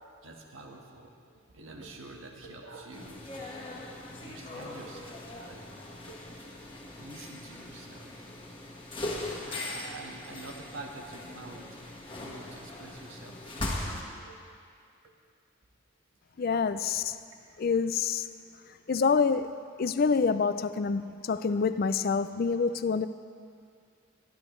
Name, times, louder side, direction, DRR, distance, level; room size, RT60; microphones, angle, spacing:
voice 1, 0.0-3.6 4.1-6.7 6.9-8.3 8.7-8.8 9.4-11.9 12.2-14.4 15.0-15.1 16.3-17.1 17.4-17.6 17.9-18.0 18.6-18.7 19.4-19.5 20.3-20.4, right 2 dB, 65° right, 1 dB, 1.5 m, -48 dB
sound 1, 2.9-14.0, left 2 dB, 25° left, 1.4 m, -40 dB
voice 2, 16.4-17.2 17.6-18.3 18.9-23.1, left 5 dB, 45° left, 12 dB, 0.3 m, -27 dB
23.5 x 12.0 x 3.2 m, 2.3 s
head